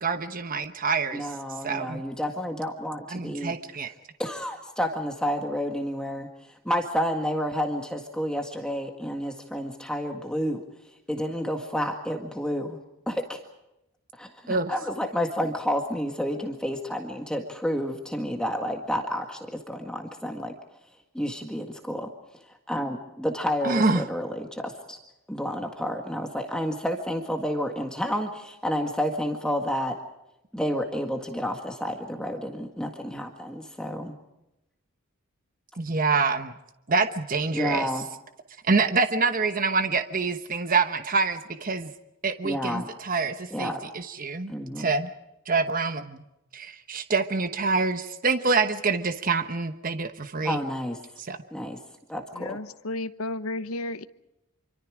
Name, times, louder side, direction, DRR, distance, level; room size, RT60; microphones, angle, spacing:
voice 1, 0.0-1.3 1.6-2.0 3.1-3.9 14.5-14.7 23.6-24.1 35.8-36.5 36.9-37.9 38.6-41.9 42.2-45.1 45.5-46.2 46.5-50.6 51.2-51.4, right 4 dB, 40° right, 9 dB, 1.1 m, -26 dB
voice 2, 1.1-3.5 4.2-6.3 6.7-10.6 11.1-12.8 13.1-13.4 14.2-20.5 21.1-22.1 22.7-25.0 25.3-30.0 30.5-34.2 37.5-38.0 42.4-42.9 43.5-43.8 44.5-44.9 50.4-51.0 51.5-51.8 52.1-52.6, equal, 5° left, 3 dB, 1.8 m, -30 dB
voice 3, 52.3-54.0, left 2 dB, 75° left, 12 dB, 1.0 m, -33 dB
27.0 x 24.5 x 5.0 m, 0.90 s
head